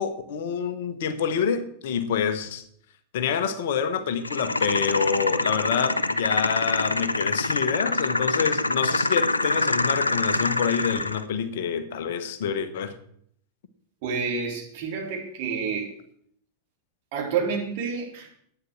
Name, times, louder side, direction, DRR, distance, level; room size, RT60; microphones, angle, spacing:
voice 1, 0.0-2.6 3.1-13.0, left 7 dB, 55° left, 1.2 m, -27 dB
sound 1, 4.2-11.2, left 2 dB, 80° left, 0.6 m, -25 dB
voice 2, 14.0-15.9 17.1-18.3, right 5 dB, 50° right, 3.8 m, -29 dB
11.0 x 9.2 x 6.3 m
figure-of-eight pair, 90°, 0 cm